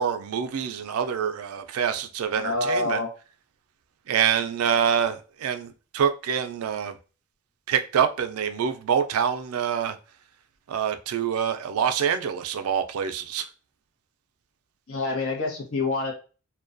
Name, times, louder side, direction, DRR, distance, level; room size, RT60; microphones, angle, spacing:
voice 1, 0.0-3.0 4.1-7.0 7.7-10.0 10.7-13.5, right 8 dB, 80° right, 0.4 m, -26 dB
voice 2, 2.4-3.1 14.9-16.1, left 3 dB, 70° left, 0.8 m, -27 dB
2.3 x 2.2 x 2.5 m
head